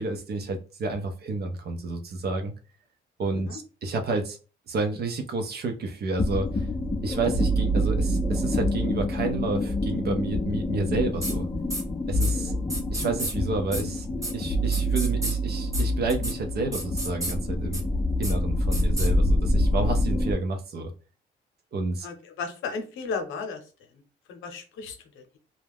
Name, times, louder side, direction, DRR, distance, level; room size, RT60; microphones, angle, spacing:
voice 1, 0.0-2.5 3.2-4.4 4.7-6.7 7.0-11.5 12.1-12.5 12.9-14.1 14.3-17.8 18.2-20.9 21.7-22.1, right 3 dB, 55° right, 5 dB, 0.6 m, -30 dB
sound 1, 6.2-20.3, equal, 20° left, 0.5 m, -26 dB
sound 2, 11.2-11.3 11.7-11.8 12.2-12.3 12.7-13.3 13.7-13.8 14.2-14.3 14.7-15.3 15.7-15.8 16.1-16.3 16.7-17.3 17.7-17.8 18.2-18.3 18.7-19.1, right 1 dB, 15° right, 0.8 m, -31 dB
voice 2, 22.0-23.6 24.3-25.4, left 4 dB, 90° left, 5 dB, 0.7 m, -35 dB
2.3 x 2.1 x 3.4 m, 0.35 s
cardioid pair, 90°, 20 cm